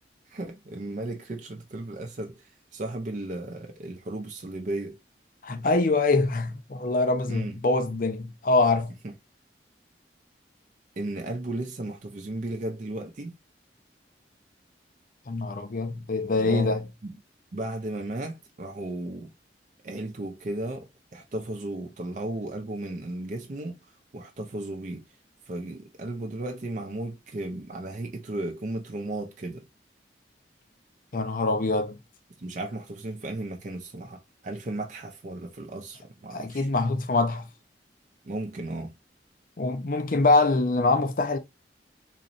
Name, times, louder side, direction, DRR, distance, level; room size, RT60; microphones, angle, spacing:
voice 1, 0.3-5.0 7.3-7.5 9.0-9.1 11.0-13.3 16.4-16.7 17.0-17.1 17.5-19.3 19.8-23.8 24.1-25.0 25.5-29.6 32.4-36.7 38.3-38.9, right 2 dB, 45° right, 0.5 m, -35 dB
voice 2, 5.4-8.9 15.3-16.9 31.1-32.0 36.3-37.5 39.6-41.4, left 3 dB, 50° left, 0.6 m, -24 dB
3.9 x 3.0 x 2.5 m
head